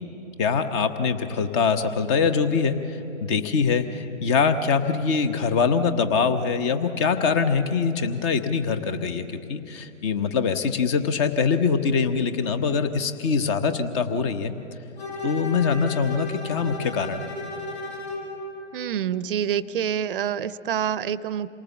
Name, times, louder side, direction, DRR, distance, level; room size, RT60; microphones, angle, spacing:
voice 1, 0.4-14.5 15.2-17.2, left 5 dB, 20° left, 9 dB, 0.8 m, -23 dB
Bowed string instrument, 15.0-18.4, left 2 dB, 55° left, 6.2 m, -34 dB
voice 2, 18.7-21.5, right 9 dB, 45° right, 17 dB, 0.6 m, -27 dB
27.5 x 19.0 x 7.1 m, 3.0 s
figure-of-eight pair, 135°, 38 cm